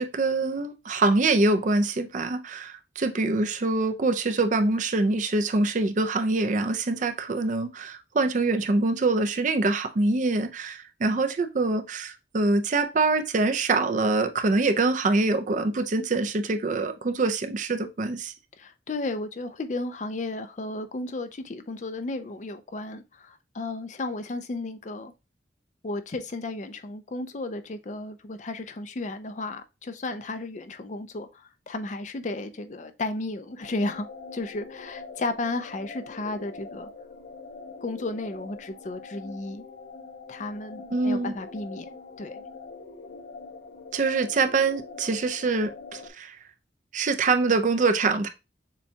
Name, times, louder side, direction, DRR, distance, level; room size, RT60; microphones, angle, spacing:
voice 1, 0.0-18.3 40.9-41.4 43.9-46.4 46.9-48.3, right 3 dB, 45° right, 0.4 m, -24 dB
voice 2, 18.6-25.1 25.8-34.1 34.3-36.9 37.8-39.6 40.3-42.4, left 2 dB, 40° left, 0.5 m, -34 dB
sound 1, 33.6-46.1, left 4 dB, 70° left, 0.7 m, -43 dB
6.8 x 2.3 x 2.7 m
head